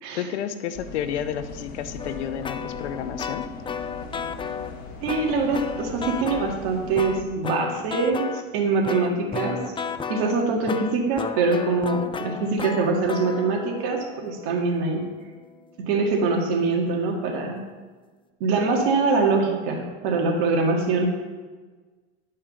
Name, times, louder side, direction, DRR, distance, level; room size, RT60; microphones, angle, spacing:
voice 1, 0.1-3.5, left 9 dB, 90° left, 11 dB, 0.9 m, -31 dB
sound 1, 0.7-7.3, left 3 dB, 55° left, 1.9 m, -40 dB
sound 2, 2.0-4.8 5.1-6.6 7.0-8.4 8.8-15.9, left 6 dB, 15° left, 0.4 m, -34 dB
voice 2, 5.0-9.6 10.1-15.0 15.8-17.6 18.4-21.1, right 3 dB, 70° right, 1 dB, 2.2 m, -24 dB
10.5 x 5.5 x 6.8 m, 1.4 s
supercardioid pair, 105°, 33 cm